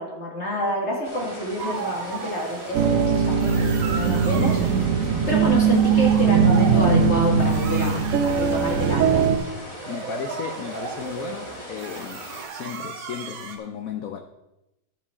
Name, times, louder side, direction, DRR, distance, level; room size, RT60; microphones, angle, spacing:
voice 1, 0.0-3.5 3.9-4.6 4.9-9.2, equal, 35° left, 2.0 m, -28 dB
sound 1, 1.0-12.4, left 1 dB, 15° left, 1.4 m, -39 dB
sound 2, 1.6-3.0 3.4-4.8 5.3-13.6, right 6 dB, 90° right, 1.8 m, -36 dB
sound 3, 2.7-9.4, right 6 dB, 70° right, 0.8 m, -20 dB
voice 2, 9.9-14.2, left 8 dB, 90° left, 0.7 m, -35 dB
12.0 x 7.2 x 3.6 m
omnidirectional pair, 2.2 m